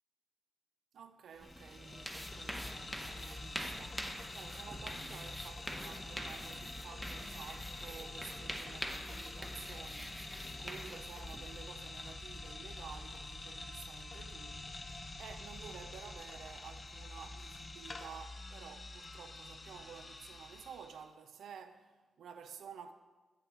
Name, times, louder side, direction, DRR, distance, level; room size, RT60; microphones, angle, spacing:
voice 1, 0.9-22.9, right 7 dB, 80° right, 0.4 m, -52 dB
sound 1, 1.3-21.0, left 2 dB, 45° left, 0.7 m, -47 dB
sound 2, 1.4-11.6, equal, 5° right, 0.7 m, -46 dB
7.8 x 5.7 x 3.7 m
cardioid pair, 50°, 0 cm